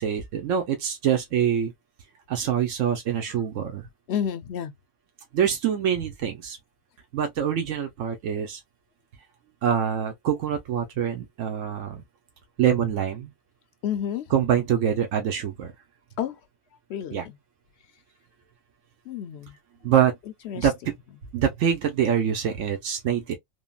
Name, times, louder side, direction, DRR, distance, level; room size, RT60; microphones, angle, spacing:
voice 1, 0.0-1.7 2.3-3.8 5.3-6.6 7.1-8.6 9.6-12.0 12.6-13.3 14.3-15.7 17.1-17.2 19.8-20.1 20.6-20.8 21.3-23.4, right 8 dB, 90° right, 1.1 m, -25 dB
voice 2, 4.1-4.7 13.8-14.3 16.2-16.4 16.9-17.4 19.1-19.6 20.4-20.7, left 9 dB, 70° left, 0.8 m, -30 dB
3.6 x 2.0 x 2.3 m
omnidirectional pair, 1.3 m